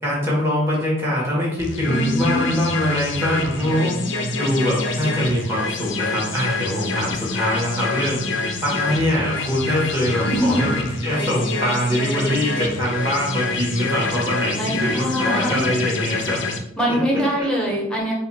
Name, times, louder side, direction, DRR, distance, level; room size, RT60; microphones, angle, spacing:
voice 1, 0.0-4.0 4.4-16.4 16.9-17.2, equal, 15° right, -6 dB, 1.7 m, -23 dB
sound 1, 1.6-16.6, left 3 dB, 80° left, 0.6 m, -26 dB
voice 2, 1.8-2.5 10.2-10.7 14.6-15.8 16.8-18.1, equal, 5° left, -3 dB, 1.1 m, -23 dB
4.8 x 2.5 x 4.3 m, 0.80 s
head